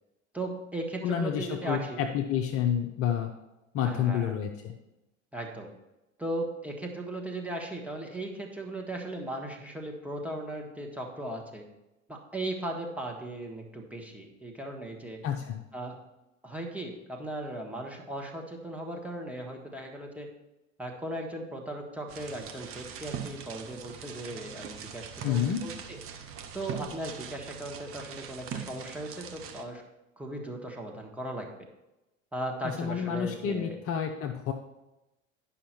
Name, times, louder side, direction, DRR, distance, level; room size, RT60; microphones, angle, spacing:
voice 1, 0.3-2.0 3.8-4.3 5.3-5.7 6.2-11.6 12.1-15.2 15.7-15.9 16.4-20.3 20.8-26.0 26.5-29.8 30.2-31.5 32.3-33.8, right 1 dB, 5° right, 0 dB, 1.4 m, -37 dB
voice 2, 1.0-3.3 3.7-4.7 15.2-15.6 25.2-25.6 32.6-34.5, left 9 dB, 35° left, 3 dB, 0.7 m, -29 dB
sound 1, 22.1-29.6, right 7 dB, 35° right, 0.9 m, -42 dB
10.0 x 5.7 x 4.4 m, 0.97 s
figure-of-eight pair, 80°, 40 cm